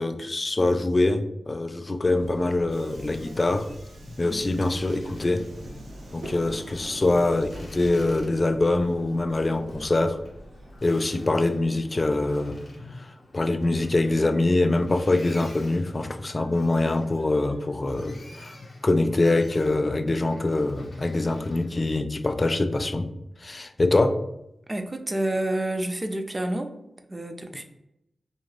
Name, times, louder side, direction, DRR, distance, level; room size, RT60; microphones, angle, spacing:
voice 1, 0.0-3.7 4.2-5.4 6.1-10.2 10.8-12.6 13.0-13.1 13.3-18.5 18.8-23.1 23.4-24.2, left 2 dB, 40° left, 8 dB, 0.3 m, -24 dB
Subway metro underground, 2.0-10.8, right 1 dB, 90° right, 0.5 m, -44 dB
Boat Water vehicle, 2.1-21.9, left 2 dB, 65° left, 0.7 m, -49 dB
voice 2, 24.7-26.7 27.1-27.6, right 1 dB, 30° right, 6 dB, 0.4 m, -28 dB
2.5 x 2.3 x 3.2 m, 0.83 s
cardioid pair, 45°, 0 cm